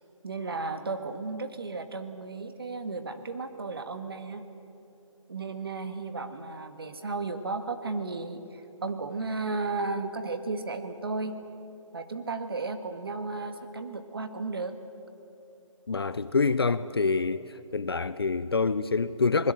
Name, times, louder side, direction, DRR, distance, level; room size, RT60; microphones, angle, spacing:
voice 1, 0.2-4.5 5.3-11.4 11.9-14.8, right 3 dB, 45° right, 1.7 m, -34 dB
voice 2, 15.9-17.4 17.7-19.5, left 4 dB, 45° left, 0.6 m, -26 dB
27.0 x 20.0 x 7.7 m
hypercardioid pair, 175°, 17 cm